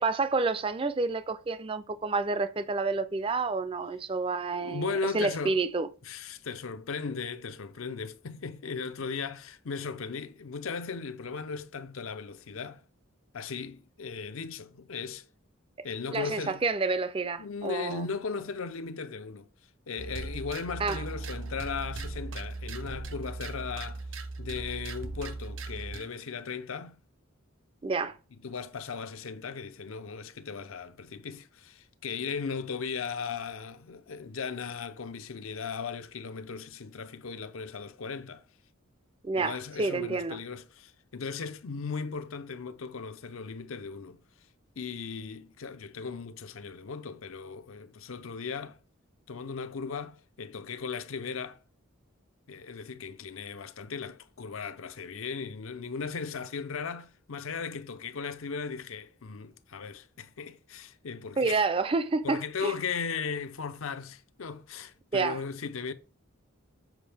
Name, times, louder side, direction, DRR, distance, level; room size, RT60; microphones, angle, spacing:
voice 1, 0.0-5.9 15.8-15.9 16.1-18.1 20.8-21.0 27.8-28.2 39.2-40.4 61.4-62.7 65.1-65.4, right 3 dB, 25° right, 0.4 m, -29 dB
voice 2, 4.5-5.6 6.0-12.8 13.3-15.2 15.8-16.6 17.4-19.5 19.9-24.0 24.4-27.0 28.4-38.4 39.4-44.2 44.8-48.8 49.3-51.6 52.5-61.6 62.2-65.9, left 5 dB, 80° left, 0.6 m, -37 dB
sound 1, 20.0-26.1, right 3 dB, 65° right, 0.7 m, -38 dB
7.3 x 5.1 x 3.4 m
head